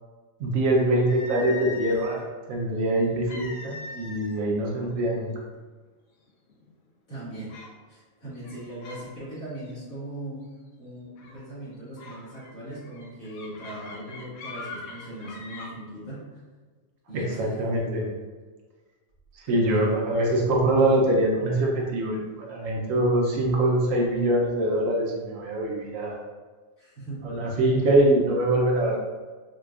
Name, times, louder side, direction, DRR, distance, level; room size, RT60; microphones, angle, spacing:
voice 1, 0.4-2.2 2.5-5.3 17.1-18.1 19.4-26.2 27.2-29.0, right 1 dB, 75° right, -2 dB, 1.0 m, -23 dB
sound 1, 1.1-2.3 3.3-4.4 4.7-5.0 5.7-5.8 6.3-6.7 7.5-7.8 8.4-9.1 9.4-9.7 11.2-11.4 12.0-15.7, left 3 dB, 90° left, 1.0 m, -41 dB
voice 2, 7.1-7.5 7.9-10.4 10.8-16.4 17.1-17.5 17.8-18.1 19.5-19.9 26.8-27.3, right 1 dB, 60° left, -11 dB, 2.0 m, -39 dB
4.9 x 2.2 x 2.3 m, 1.4 s
omnidirectional pair, 1.4 m